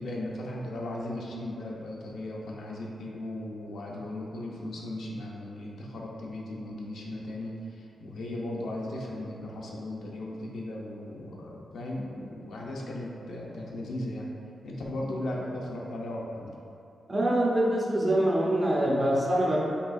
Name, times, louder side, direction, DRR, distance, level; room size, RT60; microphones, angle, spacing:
voice 1, 0.0-14.3 14.6-16.5, left 1 dB, 80° left, -3 dB, 0.6 m, -37 dB
voice 2, 17.1-19.6, right 1 dB, 25° right, -4 dB, 0.7 m, -24 dB
5.4 x 3.2 x 2.6 m, 2.6 s
wide cardioid pair, 140°, 0 cm